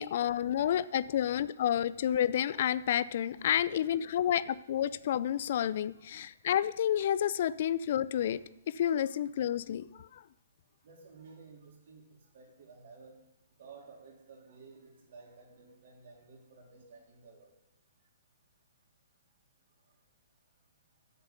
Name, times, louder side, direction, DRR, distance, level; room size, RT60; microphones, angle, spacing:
voice 1, 0.0-10.2, left 10 dB, 55° left, 17 dB, 0.4 m, -30 dB
voice 2, 4.1-4.4 5.9-6.5 10.8-13.2 13.5-17.5 19.8-20.0, right 4 dB, 55° right, -1 dB, 3.3 m, -55 dB
8.9 x 6.9 x 6.7 m, 0.86 s
hypercardioid pair, 125°, 0 cm